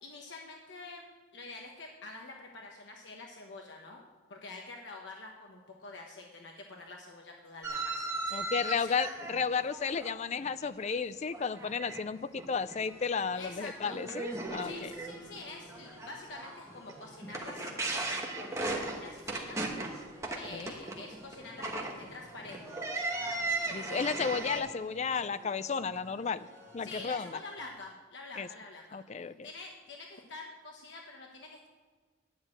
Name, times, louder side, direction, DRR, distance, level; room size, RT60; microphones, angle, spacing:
voice 1, 0.0-1.1 1.3-8.9 13.4-14.0 14.6-19.7 20.3-22.8 26.8-31.7, left 3 dB, 60° left, 1 dB, 1.1 m, -47 dB
sound 1, 7.6-11.0 11.3-12.0 12.4-12.8 13.2-13.3 13.8-24.6, right 2 dB, 15° right, 1.2 m, -37 dB
voice 2, 8.3-14.9 20.5-20.7 23.7-26.5 26.7-27.4 28.4-28.5 28.9-29.5, left 5 dB, 35° left, 14 dB, 0.4 m, -33 dB
sound 2, 12.8-27.7, equal, 10° left, 2.1 m, -56 dB
10.5 x 6.3 x 8.6 m, 1.4 s
head